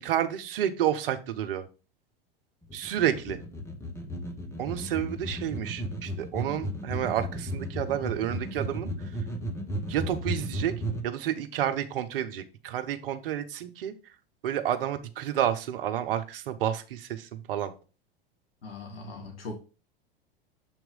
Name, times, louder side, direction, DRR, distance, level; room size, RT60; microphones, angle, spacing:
voice 1, 0.0-1.6 2.7-3.4 4.6-8.9 9.9-10.7 11.0-13.9 14.4-17.7, right 10 dB, 65° right, 8 dB, 0.9 m, -30 dB
sound 1, 2.6-11.0, right 1 dB, 10° left, 1.2 m, -34 dB
voice 2, 18.6-19.6, left 3 dB, 75° left, 2 dB, 1.6 m, -40 dB
7.2 x 3.1 x 5.2 m, 0.33 s
hypercardioid pair, 90°, 30 cm